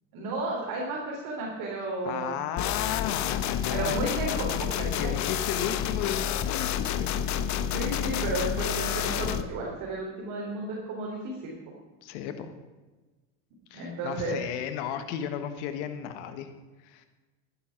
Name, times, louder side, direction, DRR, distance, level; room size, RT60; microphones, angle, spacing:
voice 1, 0.1-2.3 3.7-5.1 7.7-11.5 13.7-14.4, right 2 dB, 65° right, -3 dB, 3.8 m, -33 dB
voice 2, 2.0-4.1 5.0-7.3 12.0-12.5 13.7-16.5 16.8-17.0, left 9 dB, 85° left, 8 dB, 1.4 m, -34 dB
sound 1, 2.6-9.4, left 9 dB, 55° left, 1.0 m, -29 dB
12.5 x 9.9 x 6.0 m, 1.2 s
supercardioid pair, 95°, 34 cm